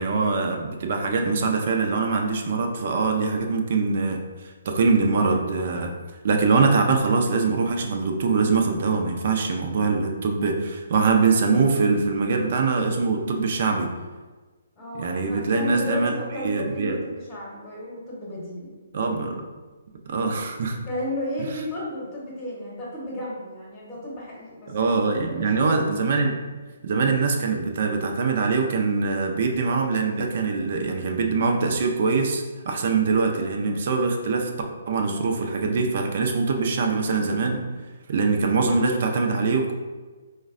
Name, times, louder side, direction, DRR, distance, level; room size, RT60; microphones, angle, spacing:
voice 1, 0.0-5.9 6.2-13.9 14.9-17.0 18.9-19.5 20.0-20.8 24.7-26.4 26.8-34.5 34.9-37.6 38.1-39.7, right 4 dB, 50° right, 3 dB, 0.5 m, -23 dB
voice 2, 14.8-18.7 20.9-25.9, left 1 dB, 20° left, -6 dB, 0.9 m, -34 dB
4.5 x 2.1 x 2.5 m, 1.3 s
figure-of-eight pair, 135°, 0 cm